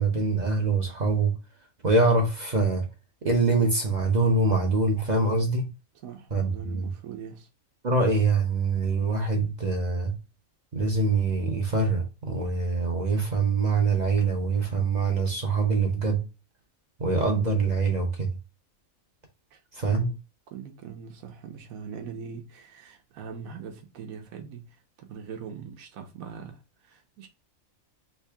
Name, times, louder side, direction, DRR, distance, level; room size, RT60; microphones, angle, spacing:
voice 1, 0.0-1.3 1.8-2.9 3.2-5.7 6.3-6.9 7.8-10.1 10.7-16.2 17.0-18.3 19.7-20.1, right 3 dB, 45° right, 0.6 m, -24 dB
voice 2, 6.0-7.5 19.5-20.2 20.5-27.3, right 6 dB, 80° right, 1.1 m, -42 dB
3.3 x 2.7 x 3.3 m
omnidirectional pair, 1.4 m